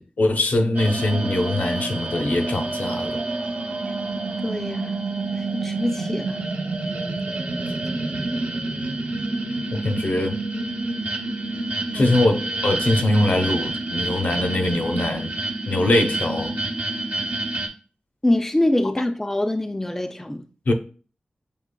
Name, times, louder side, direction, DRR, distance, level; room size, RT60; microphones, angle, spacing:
voice 1, 0.0-3.2 9.7-10.4 11.9-15.4 15.7-16.6 20.7-20.8, left 1 dB, 70° left, 0.7 m, -22 dB
sound 1, 0.7-17.7, right 2 dB, 70° right, 0.7 m, -28 dB
voice 2, 4.4-5.1 5.4-6.4 11.9-12.2 18.2-20.5, left 1 dB, 10° left, 0.3 m, -24 dB
6.7 x 2.8 x 2.3 m
wide cardioid pair, 80°, 3 cm